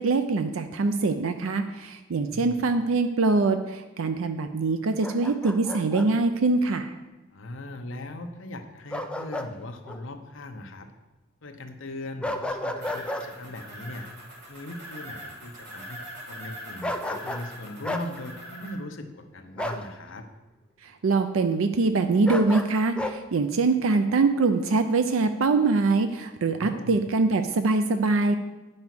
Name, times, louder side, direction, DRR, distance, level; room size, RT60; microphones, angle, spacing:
voice 1, 0.0-6.9 20.8-28.4, right 3 dB, 80° right, 8 dB, 0.5 m, -23 dB
voice 2, 2.3-2.6 7.3-10.9 11.4-14.1 14.5-20.3 26.5-27.0, left 2 dB, 65° left, 6 dB, 0.9 m, -39 dB
Bark, 5.0-6.1 8.9-9.5 9.9-10.0 12.2-13.3 16.8-17.5 17.8-18.1 19.6-19.9 22.2-23.2, left 1 dB, 5° left, 0.5 m, -32 dB
sound 1, 12.8-18.7, equal, 55° right, 2.9 m, -42 dB
9.2 x 5.4 x 6.1 m, 1.1 s
head